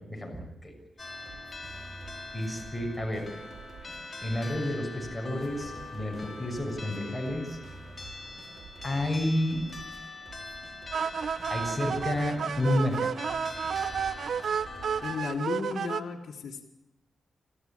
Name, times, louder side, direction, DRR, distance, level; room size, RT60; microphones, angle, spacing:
voice 1, 0.1-0.7 2.3-3.3 4.2-7.6 8.8-9.7 11.5-13.2, left 1 dB, 5° left, 1 dB, 7.0 m, -30 dB
sound 1, 1.0-15.2, left 3 dB, 35° left, 4.1 m, -43 dB
sound 2, 1.0-15.0, right 3 dB, 55° right, 3.9 m, -49 dB
sound 3, 10.9-16.0, right 7 dB, 75° right, 0.8 m, -31 dB
voice 2, 15.0-16.7, left 5 dB, 75° left, -2 dB, 1.8 m, -34 dB
26.5 x 15.0 x 8.9 m, 0.98 s
cardioid pair, 80°, 0 cm